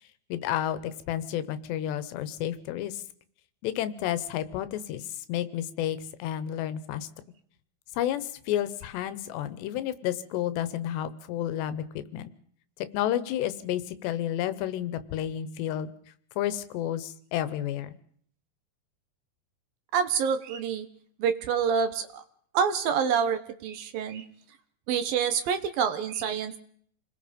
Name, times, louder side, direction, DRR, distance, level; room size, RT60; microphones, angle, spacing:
voice 1, 0.3-3.0 3.6-5.0 5.3-7.1 8.0-12.3 12.9-15.9 16.4-17.9, left 11 dB, 90° left, 14 dB, 3.3 m, -31 dB
voice 2, 19.9-20.9 21.2-22.2 22.5-24.3 24.9-26.6, right 7 dB, 65° right, 10 dB, 2.8 m, -27 dB
28.5 x 20.5 x 5.3 m, 0.62 s
omnidirectional pair, 4.8 m